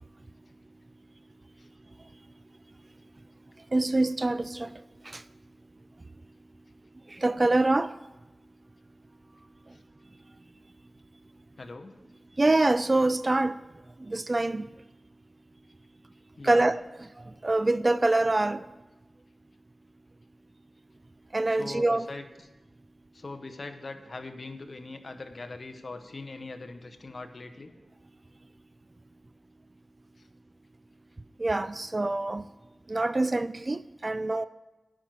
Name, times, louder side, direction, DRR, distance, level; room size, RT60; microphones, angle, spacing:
voice 1, 3.7-4.7 5.1-5.2 7.2-7.9 12.4-13.6 14.1-14.7 16.4-16.8 17.4-18.6 21.3-22.0 31.4-32.4 32.9-34.4, right 2 dB, 30° right, 0.3 m, -25 dB
voice 2, 11.6-11.9 16.4-16.7 21.6-22.2 23.1-27.7, left 3 dB, 50° left, 0.9 m, -41 dB
9.8 x 6.0 x 7.6 m
wide cardioid pair, 75°, 0 cm